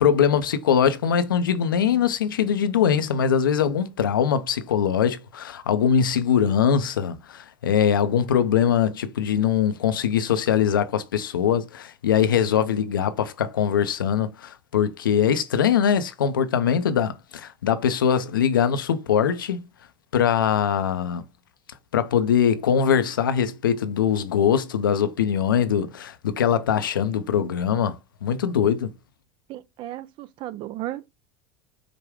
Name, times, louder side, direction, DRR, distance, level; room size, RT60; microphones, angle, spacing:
voice 1, 0.0-19.6 20.1-21.2 21.9-28.9, left 8 dB, 85° left, 0.5 m, -22 dB
voice 2, 29.5-31.1, right 14 dB, 50° right, 0.4 m, -35 dB
4.8 x 2.2 x 3.4 m
hypercardioid pair, 80°, 11 cm